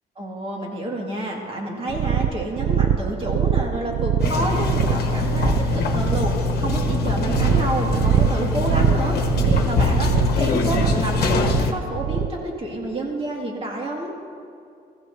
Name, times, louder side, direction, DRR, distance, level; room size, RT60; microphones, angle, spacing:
voice 1, 0.2-9.1 9.4-14.1, right 1 dB, 35° right, -1 dB, 2.3 m, -29 dB
sound 1, 1.9-12.4, right 10 dB, 70° right, 0.4 m, -24 dB
sound 2, 4.2-11.7, left 3 dB, 75° left, 1.1 m, -23 dB
20.0 x 15.0 x 2.8 m, 2.5 s
cardioid pair, 125°, 16 cm